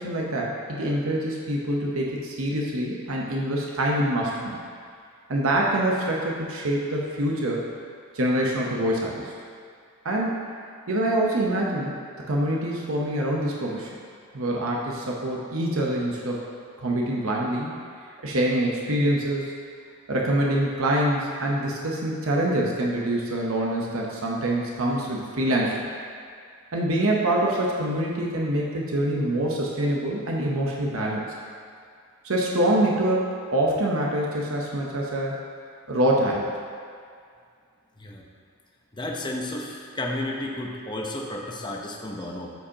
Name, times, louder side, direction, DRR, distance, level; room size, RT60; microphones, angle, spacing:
voice 1, 0.0-4.6 5.3-7.6 8.1-9.3 10.0-10.4 10.9-11.9 12.3-13.9 14.3-16.4 16.8-17.7 18.2-19.5 20.1-25.8 26.7-31.2 32.2-35.3 35.9-36.5, right 1 dB, 70° right, -3 dB, 0.9 m, -25 dB
voice 2, 38.9-42.5, left 1 dB, 20° left, -1 dB, 0.8 m, -32 dB
13.0 x 5.1 x 2.9 m, 2.2 s
head